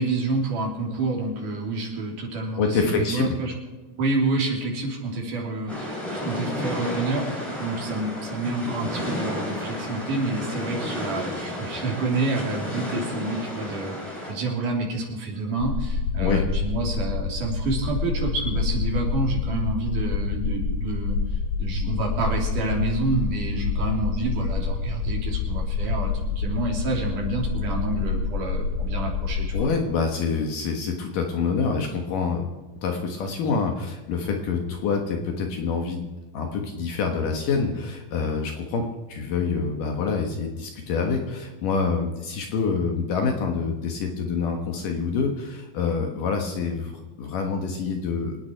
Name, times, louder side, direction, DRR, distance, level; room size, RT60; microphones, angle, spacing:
voice 1, 0.0-3.5 3.9-21.2 21.6-29.7, right 3 dB, 55° right, -1 dB, 4.5 m, -28 dB
voice 2, 2.6-3.4 16.2-16.4 29.5-36.1 36.3-48.4, left 5 dB, 65° left, 3 dB, 2.7 m, -26 dB
sound 1, 5.7-14.3, left 1 dB, ahead, 6.1 m, -32 dB
sound 2, 15.6-29.6, left 4 dB, 80° left, 4.5 m, -27 dB
26.0 x 9.7 x 4.6 m, 1.2 s
omnidirectional pair, 4.5 m